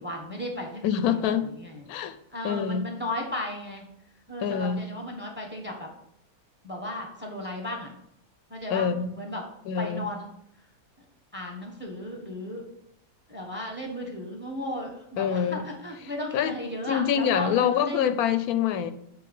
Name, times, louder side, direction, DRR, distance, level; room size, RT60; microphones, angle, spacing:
voice 1, 0.0-2.0 2.3-3.9 4.3-5.9 6.6-7.9 8.5-9.5 9.8-10.3 11.3-12.7 13.3-18.1, left 1 dB, 10° right, 1.1 m, -35 dB
voice 2, 0.8-1.5 1.9-2.2 2.4-2.9 4.4-4.9 8.7-9.1 9.7-10.1 15.2-15.6 16.3-16.5 16.9-18.9, left 8 dB, 90° left, 1.1 m, -25 dB
7.9 x 3.1 x 5.4 m
omnidirectional pair, 1.5 m